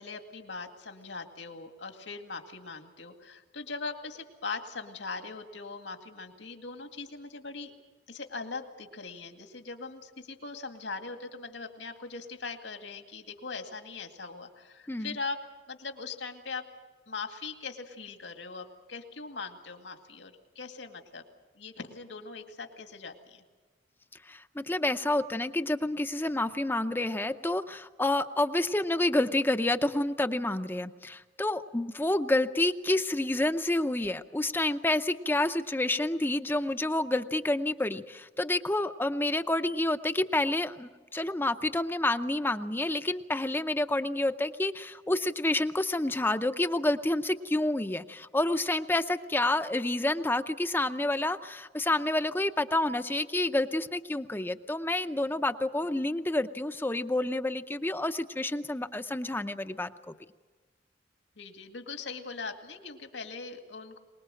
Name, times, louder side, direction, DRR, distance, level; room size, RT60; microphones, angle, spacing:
voice 1, 0.0-7.7 8.1-15.4 15.7-16.7 17.1-21.2 21.6-23.4 61.4-64.0, left 4 dB, 75° left, 6 dB, 2.1 m, -40 dB
voice 2, 24.3-59.9, left 1 dB, 10° left, 8 dB, 0.6 m, -29 dB
23.5 x 20.5 x 7.6 m, 1.4 s
head